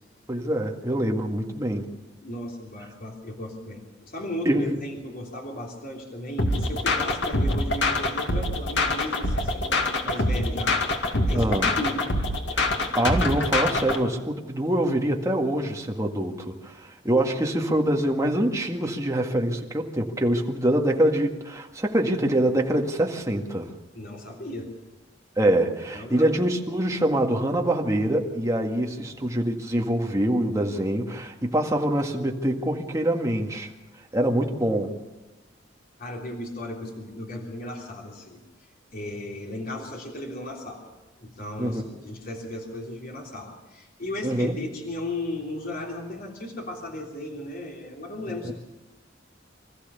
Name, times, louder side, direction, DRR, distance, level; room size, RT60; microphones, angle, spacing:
voice 1, 0.3-1.9 4.5-4.8 11.3-11.7 12.9-23.7 25.4-33.7 34.1-34.9 41.6-41.8 44.2-44.6 48.4-48.5, right 1 dB, 15° right, 1 dB, 2.0 m, -25 dB
voice 2, 2.2-10.8 11.2-12.0 23.9-24.7 25.9-26.4 29.0-29.2 36.0-38.4 38.9-40.9 41.2-48.5, left 1 dB, 50° left, 0 dB, 3.4 m, -36 dB
sound 1, 6.4-14.0, left 2 dB, 70° left, 2.3 m, -25 dB
25.0 x 14.5 x 7.0 m, 1.1 s
head